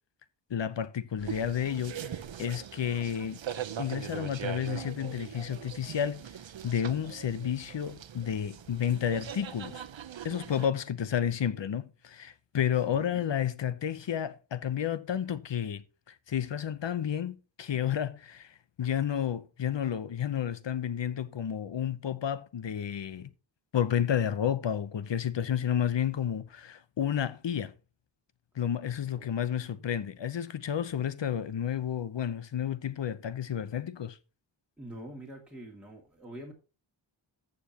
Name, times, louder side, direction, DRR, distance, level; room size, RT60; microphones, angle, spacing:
voice 1, 0.5-2.0 2.4-3.4 3.8-6.2 6.6-9.8 10.2-15.8 16.3-18.5 18.8-23.3 23.7-27.7 28.6-34.2, left 9 dB, 60° left, 0.9 m, -31 dB
sound 1, 1.2-10.7, right 9 dB, 70° right, 0.9 m, -41 dB
voice 2, 12.7-13.3 29.1-29.8 34.8-36.5, right 1 dB, ahead, 2.3 m, -46 dB
14.0 x 7.1 x 2.9 m
wide cardioid pair, 120°, 48 cm